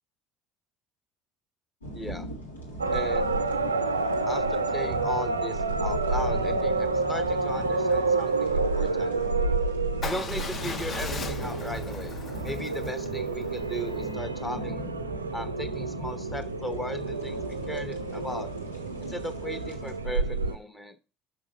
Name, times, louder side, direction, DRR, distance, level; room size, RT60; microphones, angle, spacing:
sound 1, 1.8-20.0, right 1 dB, 85° left, 1.7 m, -40 dB
voice 1, 1.9-2.3 2.9-3.4 4.3-4.4 4.7-9.1 10.0-12.2 12.4-14.9 15.3-17.4 17.7-18.5 19.0-21.0, equal, 15° left, 9 dB, 1.1 m, -37 dB
sound 2, 2.8-20.6, right 3 dB, 85° right, 0.5 m, -29 dB
Motorcycle / Engine starting / Idling, 10.0-14.1, left 4 dB, 35° left, 1.0 m, -39 dB
6.2 x 5.2 x 6.4 m, 0.31 s
figure-of-eight pair, 60°, 0 cm